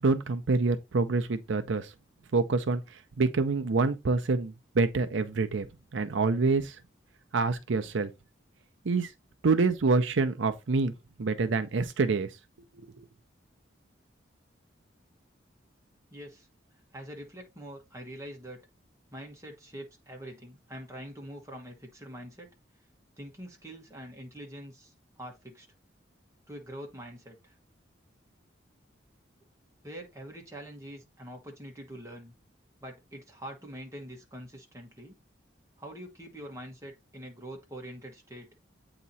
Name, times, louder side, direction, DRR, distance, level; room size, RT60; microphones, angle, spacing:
voice 1, 0.0-1.9 2.3-5.7 5.9-6.8 7.3-8.1 8.8-9.1 9.4-10.9 11.2-12.3 12.8-13.1, right 3 dB, 75° right, 0.5 m, -26 dB
voice 2, 16.1-16.5 16.9-18.6 19.1-22.5 23.2-25.7 26.5-27.6 29.8-32.3 32.8-35.1 35.8-38.5, equal, 15° right, 1.4 m, -44 dB
8.3 x 2.9 x 4.1 m
head